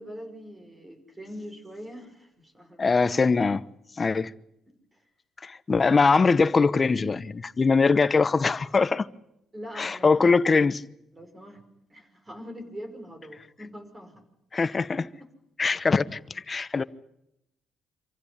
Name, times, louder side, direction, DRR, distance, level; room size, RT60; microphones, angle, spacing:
voice 1, 0.0-2.8 4.7-5.0 9.5-10.3 11.1-14.2 14.6-14.8 15.7-15.8, equal, 20° right, 5.6 m, -43 dB
voice 2, 2.8-3.6 4.0-4.3 5.4-9.1 9.8-10.8 14.5-15.0 15.6-16.8, left 4 dB, 30° left, 1.0 m, -22 dB
26.5 x 15.5 x 10.0 m
cardioid pair, 90°, 0 cm